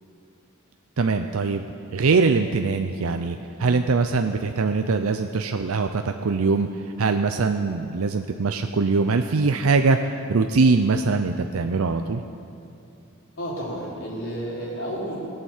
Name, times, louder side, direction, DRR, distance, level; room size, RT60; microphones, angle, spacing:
voice 1, 1.0-1.6 1.9-6.7 7.0-12.2, right 4 dB, 75° right, 6 dB, 0.5 m, -22 dB
voice 2, 13.4-15.2, equal, 60° left, -5 dB, 4.2 m, -31 dB
19.0 x 8.9 x 7.3 m, 2.6 s
head